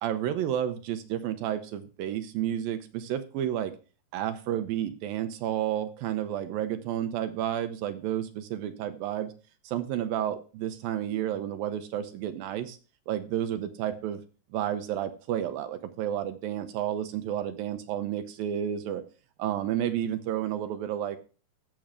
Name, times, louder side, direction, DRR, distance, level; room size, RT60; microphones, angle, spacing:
voice 1, 0.0-3.7 4.1-9.3 9.6-12.8 13.1-14.2 14.5-19.0 19.4-21.2, right 11 dB, 75° right, 9 dB, 2.5 m, -31 dB
14.0 x 6.9 x 3.6 m, 0.35 s
omnidirectional pair, 4.4 m